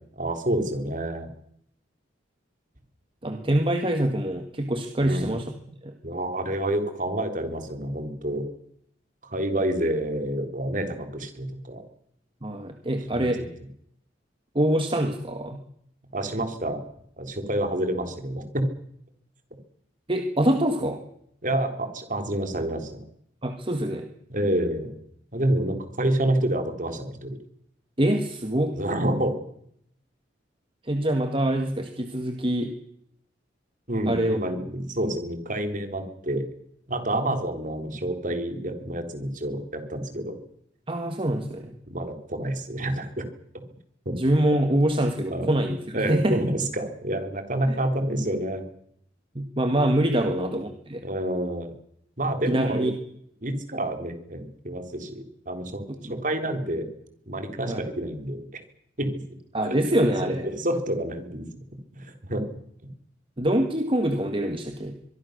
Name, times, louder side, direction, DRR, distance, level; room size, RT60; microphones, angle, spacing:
voice 1, 0.1-1.3 5.0-5.4 6.0-8.4 9.2-11.8 13.1-13.3 16.1-16.8 17.2-18.7 21.4-23.0 24.3-24.9 25.3-27.4 28.8-29.4 33.9-36.4 36.9-40.3 41.8-43.2 44.0-44.1 45.3-45.5 45.9-48.6 50.2-50.5 51.0-51.7 52.2-52.9 53.4-55.8 56.1-56.9 57.3-58.6 59.0-59.2 59.6-59.8 60.2-61.5 61.9-62.4, right 1 dB, 45° right, 7 dB, 3.5 m, -28 dB
voice 2, 3.2-5.5 5.8-5.9 12.4-13.4 14.5-15.7 20.1-21.0 23.4-24.1 28.0-28.8 30.8-32.8 34.1-34.4 37.1-37.4 40.9-41.7 44.1-46.4 47.7-47.8 49.3-51.0 52.5-52.9 56.0-56.1 57.7-57.8 59.5-60.5 63.4-65.0, right 1 dB, 30° right, 6 dB, 1.7 m, -25 dB
24.0 x 22.5 x 6.6 m, 0.72 s
head